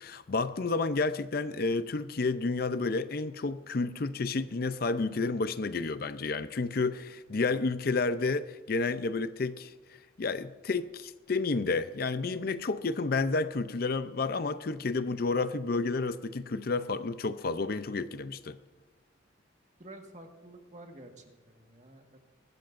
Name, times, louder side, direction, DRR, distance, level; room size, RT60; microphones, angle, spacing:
voice 1, 0.0-9.7 10.2-18.6, left 3 dB, 50° left, 0.5 m, -30 dB
voice 2, 19.8-22.2, right 1 dB, 40° right, 1.6 m, -50 dB
24.0 x 13.5 x 2.6 m
head